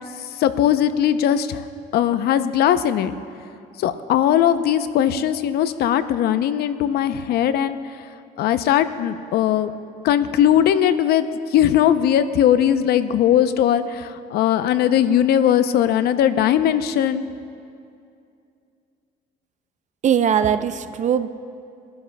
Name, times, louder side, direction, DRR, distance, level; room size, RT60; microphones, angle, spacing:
voice 1, 0.2-1.6 1.9-3.2 3.8-7.8 8.4-9.7 10.0-17.2, left 10 dB, 70° left, 11 dB, 0.6 m, -19 dB
voice 2, 20.0-21.3, right 8 dB, 45° right, 11 dB, 0.5 m, -20 dB
24.0 x 12.5 x 2.2 m, 2.5 s
cardioid pair, 110°, 17 cm